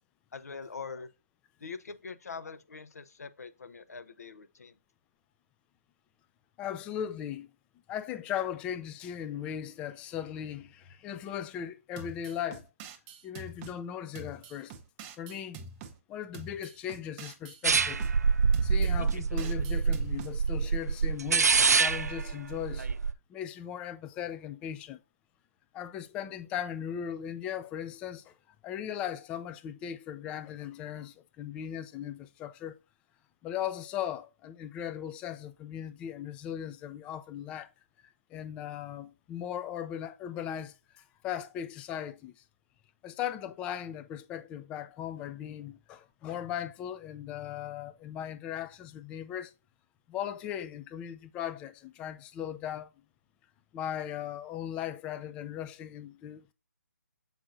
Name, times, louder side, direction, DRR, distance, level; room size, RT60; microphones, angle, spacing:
voice 1, 0.3-1.1 1.6-4.8, left 5 dB, 70° left, 0.9 m, -43 dB
voice 2, 6.6-7.5 7.9-12.7 13.2-14.7 15.2-15.6 16.1-18.0 18.6-22.9 23.3-25.0 25.7-28.3 28.6-32.8 33.4-37.7 38.3-42.4 43.0-49.5 50.1-52.9 53.7-56.5, left 10 dB, 10° left, 0.4 m, -38 dB
sound 1, 12.0-13.8 14.1-16.0 16.3-18.1 18.5-20.3, right 4 dB, 20° right, 0.7 m, -46 dB
sound 2, 17.6-23.1, right 5 dB, 80° right, 0.5 m, -26 dB
7.3 x 5.3 x 2.6 m
hypercardioid pair, 150°, 9 cm